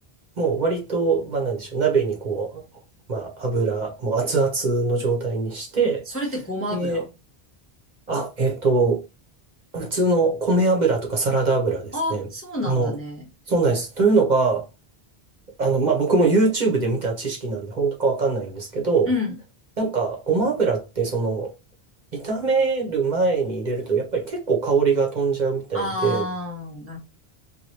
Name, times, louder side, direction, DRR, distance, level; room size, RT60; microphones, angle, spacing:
voice 1, 0.4-2.6 3.1-6.0 6.7-7.0 8.1-9.0 9.7-12.3 12.6-12.9 13.5-14.7 15.6-19.1 19.8-21.5 22.1-26.3, right 3 dB, 45° right, 0.9 m, -22 dB
voice 2, 6.1-7.0 11.9-13.3 19.1-19.3 25.7-27.0, left 2 dB, 15° left, 0.6 m, -29 dB
3.0 x 2.6 x 2.8 m
omnidirectional pair, 1.1 m